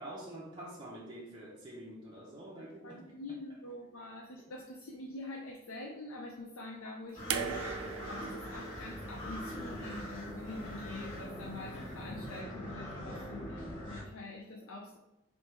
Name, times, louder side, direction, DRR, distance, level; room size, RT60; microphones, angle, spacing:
voice 1, 0.0-3.0, right 1 dB, 20° right, -5 dB, 0.6 m, -46 dB
voice 2, 2.5-7.6 8.0-15.0, left 2 dB, 85° left, -1 dB, 0.5 m, -45 dB
sound 1, 7.2-14.0, equal, 25° left, 1.5 m, -42 dB
sound 2, 7.3-10.5 11.7-11.8, right 7 dB, 90° right, 0.4 m, -40 dB
3.6 x 2.6 x 4.4 m, 0.94 s
head